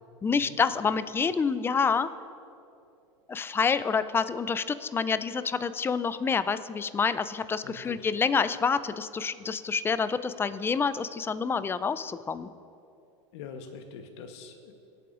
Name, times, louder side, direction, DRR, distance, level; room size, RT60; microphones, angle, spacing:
voice 1, 0.2-2.1 3.3-12.5, left 5 dB, 15° left, 14 dB, 0.4 m, -27 dB
voice 2, 7.6-8.1 13.3-14.7, left 5 dB, 65° left, 5 dB, 1.1 m, -43 dB
24.5 x 8.6 x 2.5 m, 2.7 s
hypercardioid pair, 100°, 16 cm